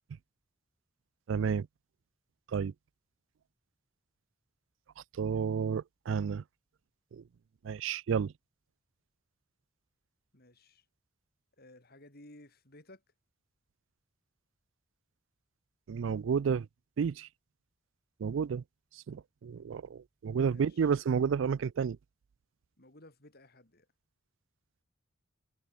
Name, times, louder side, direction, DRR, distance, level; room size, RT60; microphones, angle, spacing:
voice 1, 1.3-1.7 2.5-2.7 5.2-6.4 7.1-7.2 7.6-8.3 15.9-16.7 17.0-17.3 18.2-18.6 19.1-22.0, right 6 dB, 70° right, 0.4 m, -31 dB
voice 2, 10.3-10.8 11.6-13.0 20.4-20.9 22.8-23.9, left 1 dB, 50° left, 6.3 m, -56 dB
head